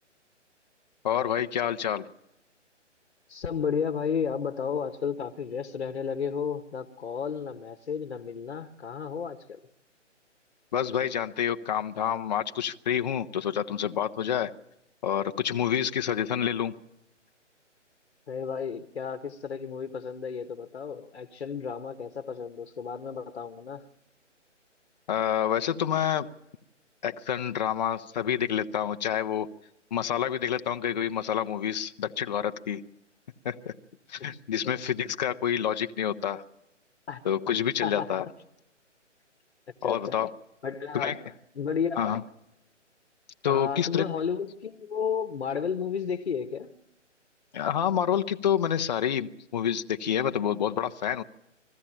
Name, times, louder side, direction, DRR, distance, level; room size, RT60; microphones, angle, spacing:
voice 1, 1.0-2.1 10.7-14.5 15.0-16.8 25.1-26.3 27.0-29.5 29.9-32.8 33.4-33.7 34.1-36.4 37.2-38.3 39.8-40.3 40.9-41.2 42.0-42.2 43.4-44.1 47.5-51.2, left 9 dB, 35° left, 0.8 m, -28 dB
voice 2, 3.3-9.6 18.3-23.9 34.2-34.3 34.6-34.8 37.1-37.2 37.8-38.2 39.8-40.2 40.6-42.2 43.4-46.7, left 6 dB, 55° left, 1.3 m, -33 dB
21.0 x 15.0 x 8.8 m
figure-of-eight pair, 140°, 37 cm